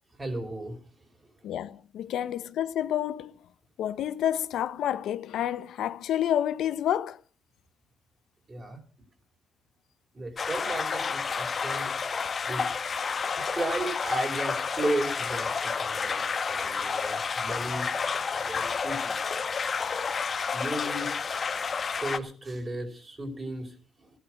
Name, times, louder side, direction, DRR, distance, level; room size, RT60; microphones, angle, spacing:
voice 1, 0.2-0.8 8.5-8.8 10.1-12.7 13.5-19.2 20.5-21.2 21.8-24.1, right 1 dB, 30° right, 4.8 m, -35 dB
voice 2, 1.4-3.3 3.8-7.1, left 11 dB, 75° left, 1.0 m, -29 dB
sound 1, 10.4-22.2, left 5 dB, 40° left, 1.5 m, -30 dB
15.0 x 11.5 x 6.3 m
cardioid pair, 90°, 0 cm